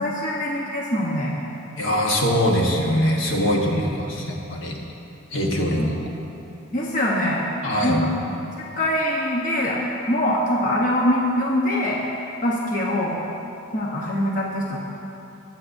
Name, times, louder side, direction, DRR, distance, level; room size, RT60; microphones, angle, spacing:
voice 1, 0.0-1.3 3.7-3.8 5.8-5.9 6.7-7.4 7.8-8.3 8.8-9.8 10.1-12.0 12.4-13.2 13.7-14.8, left 1 dB, 40° left, -4 dB, 1.0 m, -23 dB
voice 2, 1.8-4.8 5.3-6.0 7.6-8.0, equal, 65° left, -1 dB, 1.3 m, -22 dB
20.0 x 7.6 x 2.6 m, 2.8 s
head